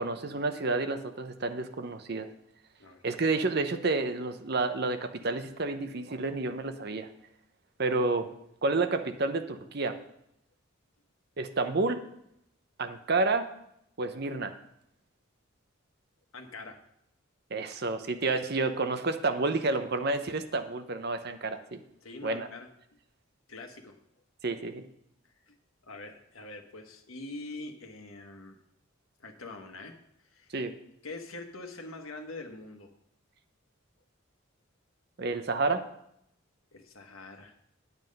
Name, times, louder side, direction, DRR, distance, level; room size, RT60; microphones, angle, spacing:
voice 1, 0.0-2.3 3.0-7.1 7.8-8.3 8.6-10.0 11.4-12.0 12.8-13.5 14.0-14.6 17.5-21.8 22.2-22.5 24.4-24.8 30.5-30.7 35.2-35.8, right 3 dB, 50° right, 8 dB, 0.8 m, -30 dB
voice 2, 16.3-16.8 22.0-22.7 23.5-24.0 25.5-25.6 25.9-28.6 29.2-29.9 30.3-30.5 31.0-32.9 36.7-37.5, left 2 dB, 80° left, 4 dB, 1.3 m, -44 dB
9.6 x 8.1 x 5.3 m, 0.76 s
head